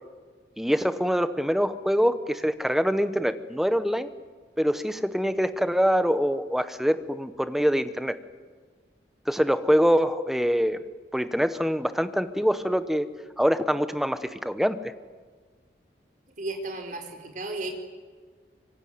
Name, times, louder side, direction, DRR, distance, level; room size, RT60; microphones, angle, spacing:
voice 1, 0.6-4.1 4.6-8.2 9.3-10.8 11.1-13.1 13.4-14.8, equal, ahead, 11 dB, 0.9 m, -24 dB
voice 2, 16.4-17.7, right 2 dB, 45° right, 4 dB, 4.5 m, -34 dB
25.0 x 24.5 x 9.4 m, 1.5 s
head